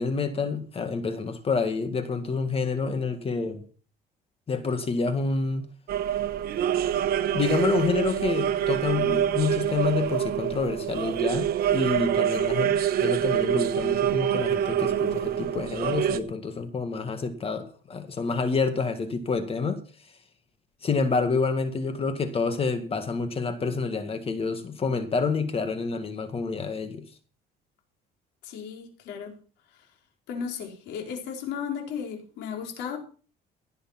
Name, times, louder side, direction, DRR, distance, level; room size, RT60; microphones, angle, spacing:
voice 1, 0.0-3.6 4.5-5.6 7.3-19.8 20.8-27.0, left 4 dB, 35° left, 1.9 m, -28 dB
sound 1, 5.9-16.2, right 10 dB, 60° right, 1.3 m, -26 dB
voice 2, 28.4-29.3 30.3-33.0, left 7 dB, 80° left, 4.4 m, -35 dB
17.5 x 7.0 x 5.9 m
cardioid pair, 115°, 17 cm